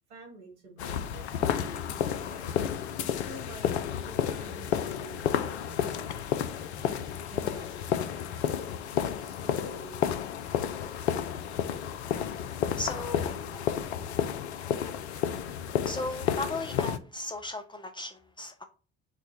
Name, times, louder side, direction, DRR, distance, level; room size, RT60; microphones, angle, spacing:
voice 1, 0.1-2.6 3.2-8.0 9.2-10.0 13.1-13.3 13.7-13.9, right 2 dB, 70° right, 0 dB, 1.9 m, -49 dB
sound 1, 0.8-17.0, left 9 dB, 70° left, 0.5 m, -31 dB
voice 2, 12.8-13.7 14.8-15.0 15.9-18.6, left 2 dB, 15° left, 5 dB, 0.4 m, -37 dB
5.4 x 2.2 x 3.0 m, 0.35 s
figure-of-eight pair, 55°, 34 cm